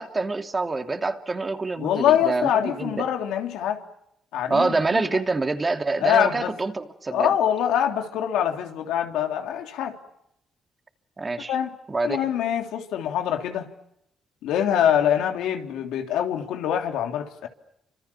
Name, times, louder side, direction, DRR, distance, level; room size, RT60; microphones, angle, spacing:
voice 1, 0.0-3.1 4.5-7.3 11.2-11.6 11.9-12.3, right 3 dB, 25° right, 2.8 m, -26 dB
voice 2, 1.8-3.8 4.3-5.0 6.0-6.5 7.1-10.0 11.5-11.7 12.0-13.7 14.4-17.5, left 9 dB, 90° left, 3.3 m, -24 dB
30.0 x 26.5 x 7.2 m
cardioid pair, 90°, 0 cm